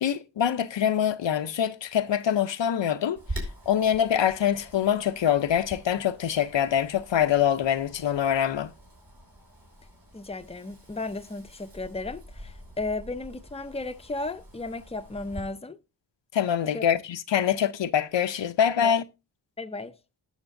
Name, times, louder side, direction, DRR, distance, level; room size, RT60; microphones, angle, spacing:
voice 1, 0.0-3.2 3.7-8.7 16.3-19.0, left 9 dB, 85° left, 0.7 m, -24 dB
Wind, 3.2-15.4, right 1 dB, 55° right, 4.9 m, -44 dB
voice 2, 10.1-15.8 16.7-16.9 18.8-19.0 19.6-19.9, left 3 dB, 15° left, 0.6 m, -34 dB
19.0 x 6.6 x 2.6 m
wide cardioid pair, 100°, 42 cm